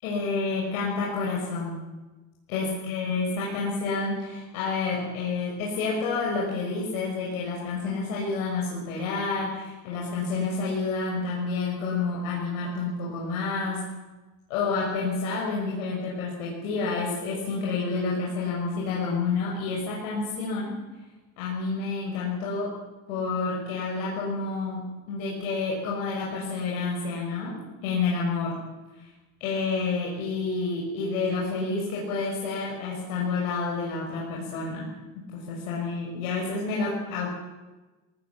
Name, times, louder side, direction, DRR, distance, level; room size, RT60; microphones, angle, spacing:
voice 1, 0.0-1.9 2.5-13.9 14.5-20.8 21.4-22.8 23.1-28.6 29.4-34.9 35.1-37.3, left 4 dB, 80° left, -4 dB, 6.6 m, -29 dB
19.5 x 18.0 x 8.7 m, 1.2 s
supercardioid pair, 130°, 42 cm